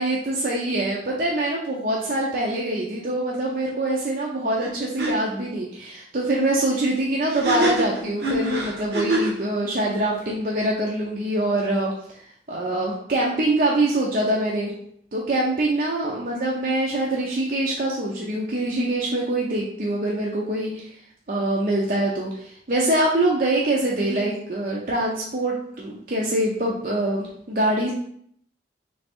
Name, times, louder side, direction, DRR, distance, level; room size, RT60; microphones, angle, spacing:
voice 1, 0.0-11.9 12.2-14.7 15.1-21.0 21.3-27.9, right 1 dB, 50° right, -3 dB, 0.6 m, -24 dB
sound 1, 4.6-4.7 5.0-5.1 7.3-9.4, right 1 dB, 75° right, 0.9 m, -24 dB
3.4 x 3.2 x 4.4 m, 0.66 s
head